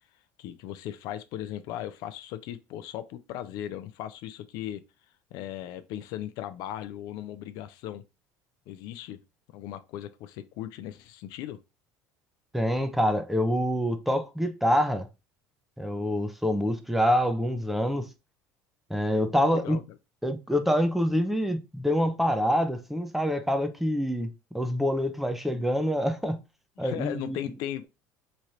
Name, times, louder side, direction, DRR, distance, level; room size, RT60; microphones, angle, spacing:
voice 1, 0.4-4.8 5.3-8.0 8.7-9.2 9.5-11.6 19.3-19.8 26.8-27.9, left 12 dB, 70° left, 0.4 m, -37 dB
voice 2, 12.5-15.1 15.8-18.1 18.9-19.8 20.2-24.3 24.5-26.4 26.8-27.4, equal, 5° right, 0.5 m, -26 dB
3.1 x 2.5 x 4.2 m
supercardioid pair, 115°, 7 cm